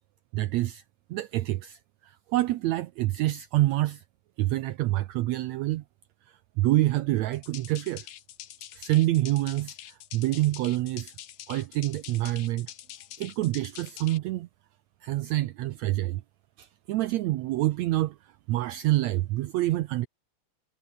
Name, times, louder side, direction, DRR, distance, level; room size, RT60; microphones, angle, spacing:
voice 1, 0.3-0.8 1.1-4.0 4.4-5.8 6.3-8.1 8.7-11.1 11.5-12.7 13.2-14.5 15.0-16.2 16.6-20.1, right 16 dB, 75° right, 1.7 m, -27 dB
sound 1, 7.3-14.2, left 12 dB, 85° left, 3.1 m, -45 dB
omnidirectional pair, 3.8 m